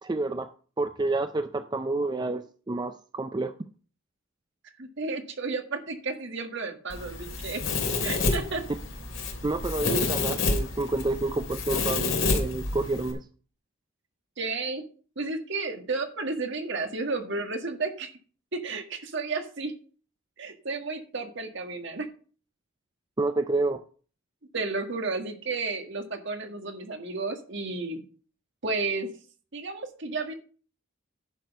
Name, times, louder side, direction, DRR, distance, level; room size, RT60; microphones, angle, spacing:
voice 1, 0.0-3.5 9.4-13.3 23.2-23.8, right 2 dB, 20° right, 0.4 m, -29 dB
voice 2, 4.8-7.6 8.0-8.6 14.4-14.8 15.1-18.1 18.5-19.7 20.4-22.1 24.5-28.0 28.6-29.1 29.5-30.3, right 3 dB, 60° right, 1.6 m, -32 dB
Domestic sounds home sounds, 6.9-13.1, left 3 dB, 65° left, 3.2 m, -29 dB
10.5 x 6.2 x 5.4 m
head